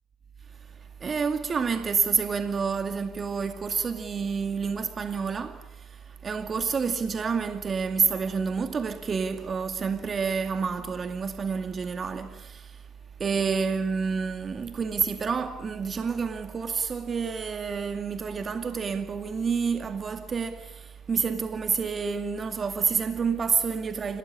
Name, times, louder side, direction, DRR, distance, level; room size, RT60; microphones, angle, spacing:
voice 1, 1.0-12.8 13.2-24.2, right 5 dB, 40° right, 2.3 m, -29 dB
27.5 x 18.5 x 9.9 m
hypercardioid pair, 60°, 0 cm